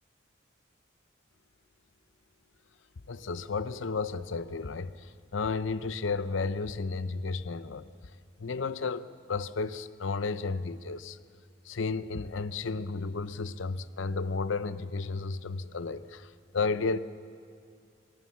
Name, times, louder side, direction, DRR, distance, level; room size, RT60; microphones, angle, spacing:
voice 1, 3.1-7.9 8.4-11.2 11.6-17.0, left 4 dB, 80° left, 0.7 m, -33 dB
23.5 x 18.0 x 7.3 m
head